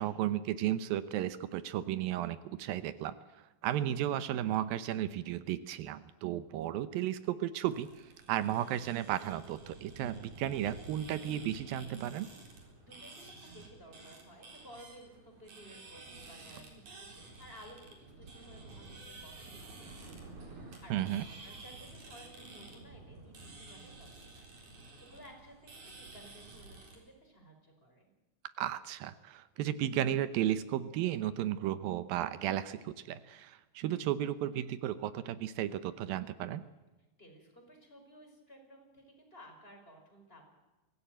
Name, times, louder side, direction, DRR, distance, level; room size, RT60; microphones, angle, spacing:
voice 1, 0.0-12.3 20.9-21.2 28.6-36.7, right 12 dB, 80° right, 13 dB, 2.6 m, -34 dB
sound 1, 7.7-27.0, right 2 dB, 55° right, 5.4 m, -51 dB
voice 2, 12.8-28.1 37.2-40.5, equal, 15° left, 2 dB, 5.1 m, -56 dB
23.5 x 16.5 x 9.1 m, 1.1 s
omnidirectional pair, 4.2 m